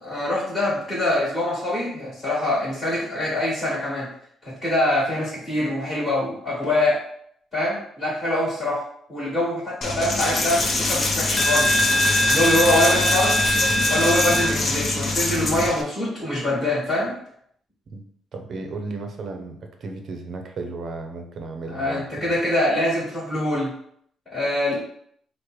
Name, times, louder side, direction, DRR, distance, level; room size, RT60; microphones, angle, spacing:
voice 1, 0.0-4.1 4.4-7.0 7.5-8.8 9.1-11.8 12.3-13.4 13.9-17.2 21.7-23.7 24.3-24.8, left 1 dB, 10° left, -9 dB, 1.5 m, -24 dB
Coin (dropping), 9.8-15.8, left 1 dB, 30° left, 0.7 m, -21 dB
voice 2, 18.3-22.3, right 3 dB, 40° right, 4 dB, 0.6 m, -34 dB
4.7 x 2.1 x 4.7 m, 0.67 s
cardioid pair, 165°, 0 cm